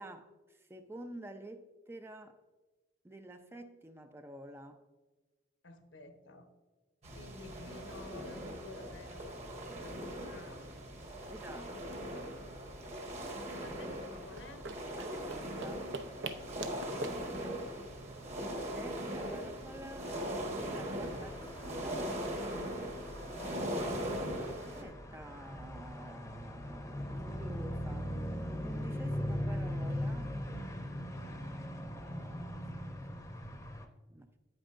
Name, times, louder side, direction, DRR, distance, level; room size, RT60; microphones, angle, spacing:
voice 1, 0.0-2.4 3.0-4.8 11.3-12.0 15.0-15.9 18.7-20.2 20.7-22.1 24.7-30.8 34.1-34.3, right 1 dB, 15° right, 0.4 m, -49 dB
voice 2, 5.6-6.5 7.1-10.7 13.4-14.7 17.2-17.5 19.3-19.5 20.9-21.3 23.3-24.0 31.1-31.6, left 2 dB, 75° left, 1.0 m, -53 dB
sound 1, 7.0-24.8, equal, 35° right, 1.2 m, -40 dB
sound 2, 14.3-19.4, right 2 dB, 85° right, 0.7 m, -45 dB
sound 3, 21.0-33.8, equal, 15° left, 0.7 m, -40 dB
9.1 x 8.8 x 2.5 m
head